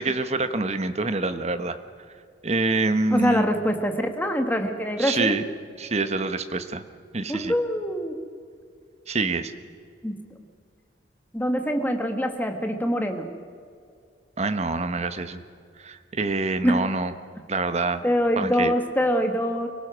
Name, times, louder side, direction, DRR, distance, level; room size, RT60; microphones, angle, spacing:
voice 1, 0.0-1.8 2.4-3.4 5.0-5.4 5.8-6.8 7.1-7.5 9.1-9.5 14.4-15.4 15.8-17.1 17.5-18.1 18.4-18.7, right 3 dB, 35° right, 10 dB, 1.1 m, -26 dB
voice 2, 3.1-5.4 7.3-8.1 10.0-10.1 11.3-13.3 16.6-16.8 18.0-19.7, equal, 10° left, 5 dB, 1.6 m, -24 dB
24.5 x 17.5 x 6.3 m, 2.3 s
head